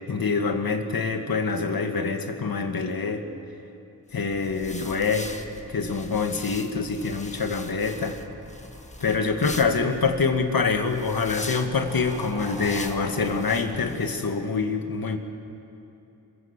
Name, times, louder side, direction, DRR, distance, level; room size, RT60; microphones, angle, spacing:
voice 1, 0.0-3.2 4.1-5.3 5.7-8.2 9.0-15.2, left 4 dB, 60° left, 5 dB, 2.2 m, -25 dB
sound 1, 4.1-14.3, left 2 dB, 15° left, 1.7 m, -41 dB
sound 2, 6.8-13.5, right 2 dB, 75° right, 4.7 m, -45 dB
26.5 x 16.0 x 7.5 m, 2.8 s
cardioid pair, 45°, 39 cm